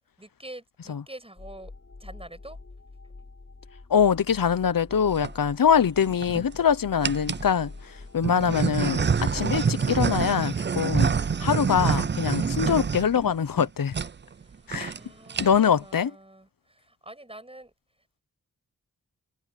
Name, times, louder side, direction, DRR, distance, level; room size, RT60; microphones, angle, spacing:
voice 1, 0.2-1.7 2.0-2.6 14.3-17.7, right 1 dB, 15° right, 6.9 m, -46 dB
sound 1, 1.4-9.6, left 3 dB, 45° left, 6.1 m, -44 dB
voice 2, 3.9-11.1 11.4-13.9 14.7-14.9 15.4-16.1, left 7 dB, 75° left, 0.9 m, -23 dB
sound 2, 4.9-5.3 6.0-6.6 7.0-7.5 8.2-13.6 13.9-14.1 14.4-14.5 14.7-15.0 15.3-15.8, right 6 dB, 35° right, 0.4 m, -26 dB
wide cardioid pair, 100°, 34 cm